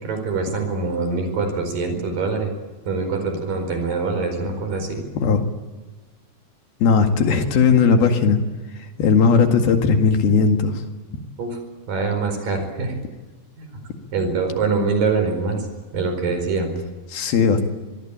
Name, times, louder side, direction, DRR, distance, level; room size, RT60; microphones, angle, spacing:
voice 1, 0.0-2.5 2.9-5.0 11.4-11.6 11.9-12.9 13.6-13.8 14.1-15.7 15.9-16.8, right 4 dB, 60° right, 6 dB, 6.3 m, -24 dB
voice 2, 6.8-8.4 9.0-10.8 17.1-17.6, left 5 dB, 70° left, 5 dB, 3.8 m, -17 dB
26.0 x 21.0 x 8.8 m, 1.2 s
omnidirectional pair, 4.6 m